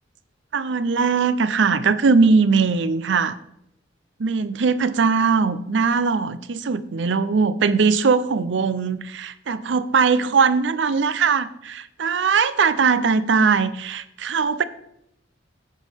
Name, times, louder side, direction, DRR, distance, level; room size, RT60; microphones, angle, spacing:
voice 1, 0.5-3.4 4.2-14.6, right 5 dB, 70° right, 14 dB, 0.5 m, -20 dB
9.2 x 8.3 x 3.5 m, 0.78 s
head